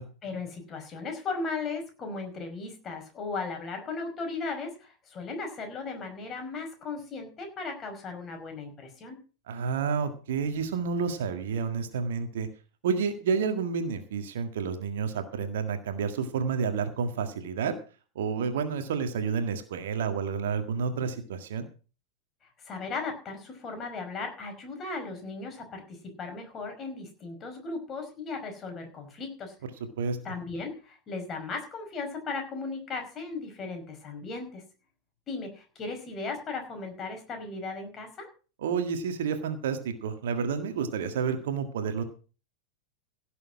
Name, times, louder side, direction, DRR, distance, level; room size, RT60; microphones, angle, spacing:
voice 1, 0.2-9.2 22.6-29.5 30.2-34.6 35.3-38.3, left 4 dB, 25° left, 5 dB, 5.2 m, -36 dB
voice 2, 9.5-12.5 12.8-17.7 18.2-21.7 30.0-30.2 38.6-42.0, right 6 dB, 60° right, 8 dB, 1.8 m, -30 dB
17.0 x 7.0 x 6.1 m, 0.36 s
figure-of-eight pair, 90°, 0 cm